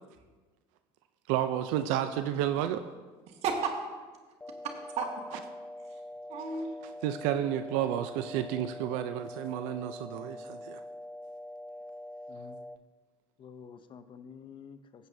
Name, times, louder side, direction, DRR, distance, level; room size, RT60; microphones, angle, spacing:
voice 1, 1.3-2.8 7.0-10.8, right 11 dB, 80° right, 9 dB, 0.5 m, -31 dB
voice 2, 3.3-3.8 4.5-5.4 5.8-6.9, right 5 dB, 60° right, 2 dB, 1.7 m, -35 dB
sound 1, 4.4-12.8, left 1 dB, 10° left, 0.3 m, -44 dB
voice 3, 12.3-12.9 13.4-15.1, left 6 dB, 45° left, 10 dB, 0.8 m, -50 dB
16.0 x 8.1 x 2.7 m, 1.3 s
supercardioid pair, 85°, 12 cm